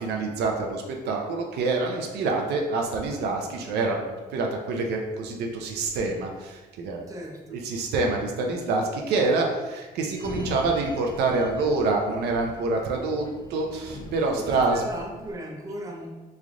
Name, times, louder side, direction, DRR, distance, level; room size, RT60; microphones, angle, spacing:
voice 1, 0.0-7.0 7.5-13.2 13.5-14.9, right 3 dB, 75° right, 1 dB, 0.5 m, -26 dB
voice 2, 7.1-7.6 14.4-16.1, right 1 dB, 20° right, -1 dB, 0.7 m, -37 dB
Sliding door, 10.1-15.3, left 2 dB, 25° left, 0.4 m, -42 dB
3.2 x 2.4 x 3.7 m, 1.2 s
cardioid pair, 110°, 17 cm